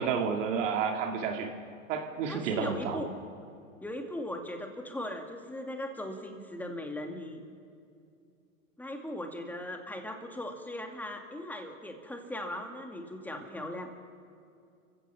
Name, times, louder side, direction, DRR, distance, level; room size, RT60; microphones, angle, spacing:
voice 1, 0.0-1.5 1.9-3.0, right 6 dB, 65° right, 3 dB, 2.4 m, -30 dB
voice 2, 2.3-3.1 3.8-7.4 8.8-13.9, left 1 dB, 5° left, 4 dB, 2.3 m, -38 dB
29.5 x 16.0 x 6.0 m, 2.5 s
hypercardioid pair, 115°, 40 cm